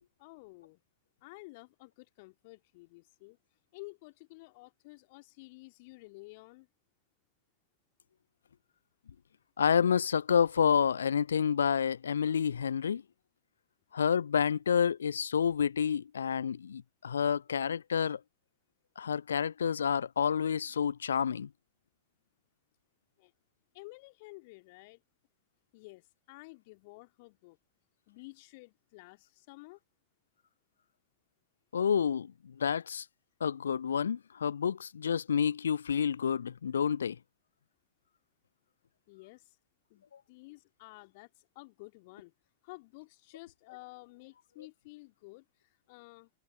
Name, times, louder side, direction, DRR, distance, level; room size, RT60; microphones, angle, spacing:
voice 1, 0.2-0.8 1.2-3.4 3.7-6.7 23.2-23.3 23.7-25.0 25.7-27.6 28.1-29.8 39.1-39.6 39.9-42.3 42.6-46.3, left 25 dB, 50° left, 2.5 m, -52 dB
voice 2, 9.6-13.0 13.9-18.2 19.0-21.5 31.7-33.0 33.4-37.2, left 7 dB, 70° left, 0.3 m, -29 dB
figure-of-eight pair, 90°, 0 cm